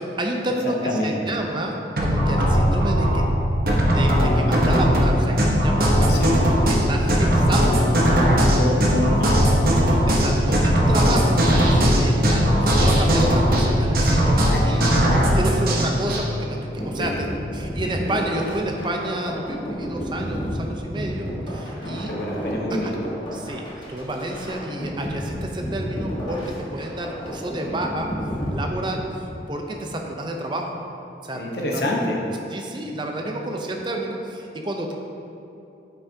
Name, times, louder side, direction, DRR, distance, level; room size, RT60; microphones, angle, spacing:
voice 1, 0.0-1.7 2.0-3.3 3.9-6.2 6.9-7.9 10.1-15.0 15.4-16.6 16.8-17.3 17.5-22.1 22.7-22.9 23.3-28.1 28.5-29.0 29.5-30.7 31.2-31.8 32.5-34.9, right 1 dB, 25° right, 2 dB, 0.6 m, -29 dB
voice 2, 0.6-1.2 5.9-6.3 8.5-9.5 14.5-15.0 17.0-17.2 21.8-22.9 31.3-32.2, left 1 dB, 65° left, -1 dB, 0.9 m, -27 dB
sound 1, 2.0-16.2, equal, 55° right, 0.9 m, -18 dB
sound 2, 16.8-29.3, equal, 25° left, 1.3 m, -31 dB
8.6 x 5.7 x 2.8 m, 2.8 s
head